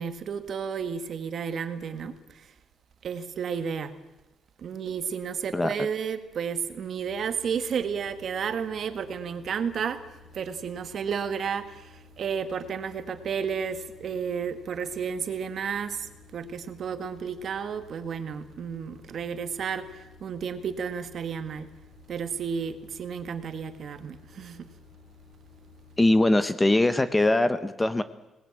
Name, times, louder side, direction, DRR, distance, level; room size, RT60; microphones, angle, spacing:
voice 1, 0.0-2.5 3.0-3.9 4.6-10.0 10.3-21.7 22.1-24.7, right 6 dB, 45° right, 10 dB, 1.7 m, -32 dB
voice 2, 5.5-5.9 26.0-28.0, left 2 dB, 10° left, 13 dB, 0.8 m, -22 dB
sound 1, 7.0-26.1, left 4 dB, 80° left, 5.6 m, -54 dB
25.0 x 19.5 x 8.8 m, 1.0 s
cardioid pair, 175°, 0 cm